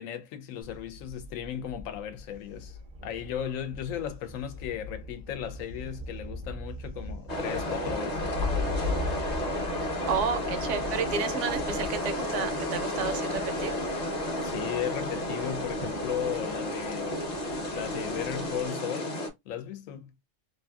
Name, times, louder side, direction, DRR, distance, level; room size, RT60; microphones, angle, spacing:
voice 1, 0.0-2.8 3.0-8.4 14.4-19.2 19.5-20.1, left 9 dB, 85° left, 1.0 m, -36 dB
Thunder, 0.6-18.7, left 2 dB, 50° right, 0.4 m, -39 dB
sound 1, 7.3-19.3, left 1 dB, 40° left, 0.7 m, -32 dB
voice 2, 10.1-13.8, right 6 dB, 75° right, 0.9 m, -31 dB
2.6 x 2.6 x 2.3 m
omnidirectional pair, 1.3 m